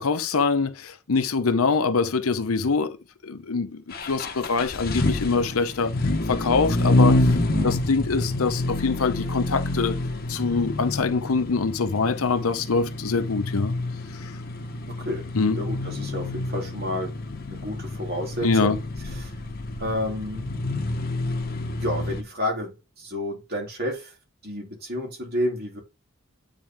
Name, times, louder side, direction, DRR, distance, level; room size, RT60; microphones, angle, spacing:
voice 1, 0.0-3.0 3.2-5.9 6.3-7.4 7.6-10.0 10.3-13.7 14.2-14.3 15.3-15.6 18.4-18.8, left 4 dB, 85° left, 0.8 m, -24 dB
sound 1, 3.9-22.2, left 2 dB, 45° left, 1.0 m, -27 dB
voice 2, 14.9-15.3 15.6-17.1 17.5-18.8 19.1-19.3 19.8-20.5 21.8-24.1 24.4-25.8, left 1 dB, 45° right, 2.9 m, -30 dB
9.0 x 3.7 x 3.6 m
head